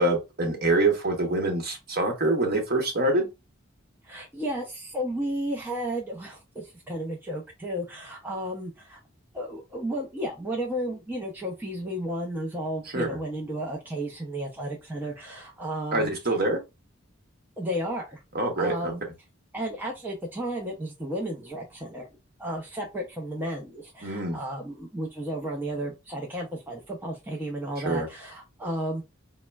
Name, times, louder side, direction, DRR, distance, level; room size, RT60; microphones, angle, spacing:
voice 1, 0.0-3.3 12.9-13.1 15.9-16.6 18.3-18.9 24.0-24.4 27.9-28.1, right 2 dB, 50° right, 2 dB, 0.9 m, -25 dB
voice 2, 4.0-9.0 9.3-16.1 17.6-18.2 18.6-19.0 19.5-22.1 22.4-29.0, right 1 dB, 10° right, -2 dB, 0.4 m, -33 dB
4.2 x 2.0 x 2.2 m, 0.25 s
head